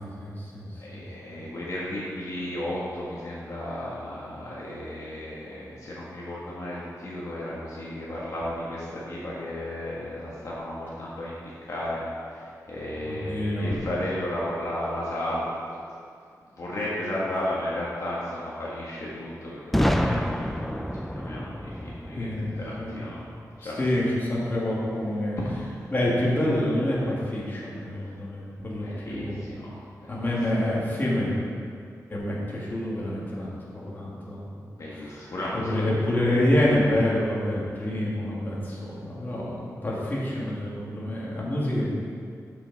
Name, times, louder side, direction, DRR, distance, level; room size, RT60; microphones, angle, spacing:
voice 1, 0.0-1.4 13.0-13.8 20.1-20.2 22.1-23.1 23.6-25.4 25.9-29.4 30.1-31.4 32.1-34.5 35.0-35.3 35.5-41.9, left 1 dB, 30° left, -6 dB, 2.1 m, -27 dB
voice 2, 0.8-11.3 11.6-12.0 12.3-15.6 16.6-20.8 21.1-22.3 22.6-23.2 23.6-23.9 25.4-25.5 28.1-28.2 28.8-29.7 30.0-30.3 34.8-35.9, left 1 dB, 55° left, -6 dB, 1.6 m, -34 dB
Boom, 19.7-23.6, equal, 5° left, 0.4 m, -28 dB
12.5 x 5.8 x 4.1 m, 2.3 s
wide cardioid pair, 140°, 6 cm